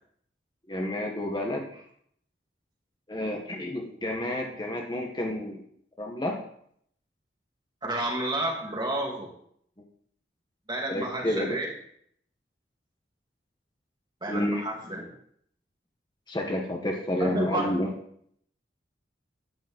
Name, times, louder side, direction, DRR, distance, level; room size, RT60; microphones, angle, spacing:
voice 1, 0.7-1.7 3.1-5.6 6.0-6.4 10.9-11.6 14.3-14.6 16.3-17.9, left 1 dB, 25° left, 1 dB, 1.3 m, -30 dB
voice 2, 7.8-9.3 10.7-11.7 14.2-15.0 17.2-17.7, right 1 dB, 25° right, -1 dB, 2.5 m, -30 dB
10.5 x 5.1 x 7.9 m, 0.67 s
head